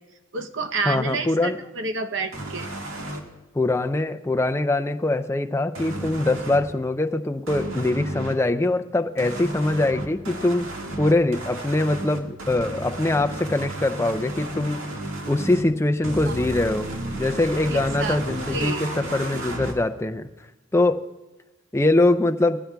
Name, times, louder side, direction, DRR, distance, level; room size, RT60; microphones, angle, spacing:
voice 1, 0.3-2.7 16.2-16.5 17.7-18.2 18.5-18.8, right 4 dB, 65° right, 6 dB, 0.8 m, -29 dB
voice 2, 0.9-1.6 3.5-10.7 11.0-14.8 15.3-16.9 17.2-20.3 20.7-21.0 21.7-22.6, left 2 dB, 15° left, 8 dB, 0.4 m, -23 dB
sound 1, 2.3-3.2 5.7-6.6 7.5-8.3 9.2-15.6 16.0-19.7, right 1 dB, 85° right, 1.8 m, -33 dB
20.5 x 16.0 x 2.3 m, 1.1 s
head